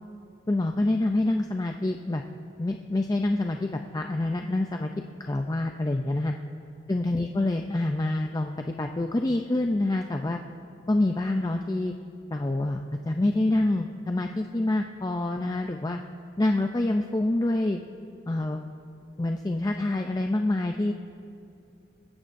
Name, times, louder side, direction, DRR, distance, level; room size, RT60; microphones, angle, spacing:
voice 1, 0.5-2.2 2.6-6.3 6.9-10.4 10.9-11.9 12.3-16.0 16.4-17.8 18.3-18.6 19.2-20.9, left 2 dB, 20° left, 4 dB, 0.4 m, -26 dB
21.0 x 15.0 x 2.6 m, 2.7 s
head